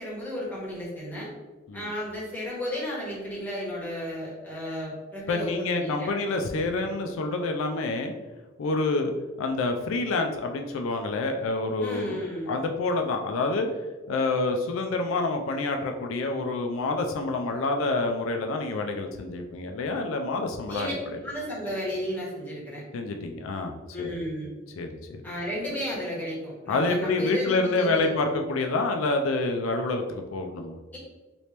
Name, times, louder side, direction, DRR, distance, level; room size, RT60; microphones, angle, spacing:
voice 1, 0.0-1.3 1.7-6.1 11.8-12.5 20.7-20.9 21.2-22.8 23.9-24.5 25.2-28.4 30.9-31.0, equal, 10° left, -7 dB, 1.2 m, -33 dB
voice 2, 5.3-8.2 8.6-9.1 9.4-13.7 14.1-20.9 22.9-24.1 24.8-25.2 26.7-30.8, left 3 dB, 80° left, 4 dB, 0.4 m, -27 dB
3.0 x 2.9 x 3.3 m, 1.3 s
head